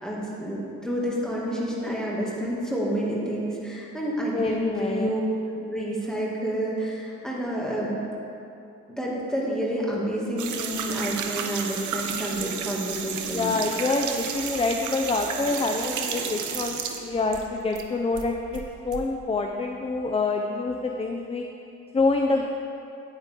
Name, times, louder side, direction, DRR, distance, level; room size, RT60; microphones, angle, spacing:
voice 1, 0.0-5.2 5.5-8.0 9.0-13.5, right 1 dB, ahead, -5 dB, 2.4 m, -29 dB
voice 2, 4.3-5.1 13.3-21.4 21.9-22.5, left 3 dB, 20° left, 3 dB, 0.6 m, -26 dB
sound 1, 10.4-17.9 18.2-19.0, right 7 dB, 75° right, 0.9 m, -32 dB
9.8 x 9.0 x 3.7 m, 2.7 s
cardioid pair, 90°, 30 cm